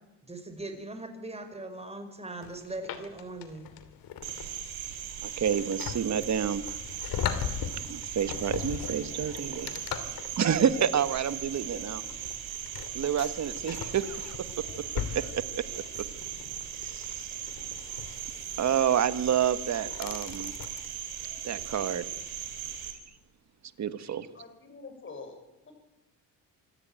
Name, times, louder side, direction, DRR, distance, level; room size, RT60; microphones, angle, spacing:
voice 1, 0.3-3.7, right 2 dB, 15° right, 7 dB, 5.2 m, -40 dB
sound 1, 2.4-20.9, left 9 dB, 75° left, 2.8 m, -40 dB
Cricket, 4.2-22.9, right 9 dB, 90° right, 3.7 m, -39 dB
voice 2, 5.2-6.7 7.9-9.8 10.4-12.0 12.9-14.4 15.1-15.4 16.8-17.4 18.6-20.5 21.4-22.0 23.8-24.3, right 8 dB, 50° right, 13 dB, 1.6 m, -28 dB
voice 3, 24.3-25.7, left 4 dB, 35° left, 5 dB, 7.1 m, -46 dB
26.0 x 14.0 x 9.0 m, 0.99 s
cardioid pair, 90°, 35 cm